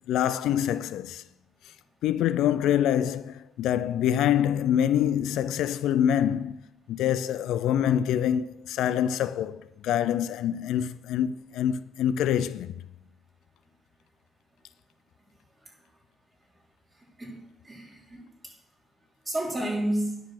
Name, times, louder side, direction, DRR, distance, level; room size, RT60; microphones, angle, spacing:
voice 1, 0.1-1.2 2.0-6.6 6.9-12.7, left 10 dB, 85° left, 0.4 m, -25 dB
voice 2, 17.0-18.5 19.3-20.2, right 1 dB, 15° right, 3.6 m, -32 dB
10.0 x 6.1 x 6.5 m
cardioid pair, 90°, 0 cm